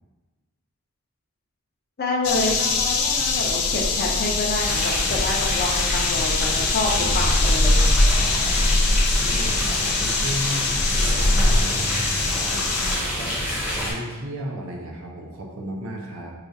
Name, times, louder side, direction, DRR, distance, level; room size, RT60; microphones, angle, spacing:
voice 1, 2.0-7.9, left 2 dB, 45° left, -1 dB, 0.5 m, -27 dB
sound 1, 2.2-13.0, left 2 dB, 90° left, 0.5 m, -22 dB
sound 2, 4.6-13.9, equal, 5° right, 0.7 m, -27 dB
voice 2, 8.2-8.9 9.2-16.3, right 1 dB, 65° right, 0 dB, 0.6 m, -35 dB
4.8 x 2.4 x 2.6 m, 1.3 s
head